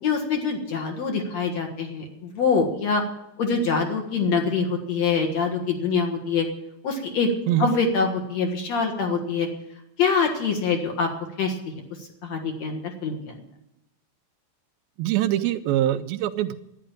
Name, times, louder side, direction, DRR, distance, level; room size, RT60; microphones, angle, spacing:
voice 1, 0.0-3.0 3.4-6.5 6.8-7.3 7.6-9.5 10.0-11.1 11.4-11.6 12.2-13.2, left 5 dB, 55° left, 3 dB, 2.5 m, -24 dB
voice 2, 15.0-16.5, right 13 dB, 80° right, 10 dB, 2.4 m, -23 dB
11.5 x 10.0 x 9.0 m, 0.85 s
omnidirectional pair, 4.3 m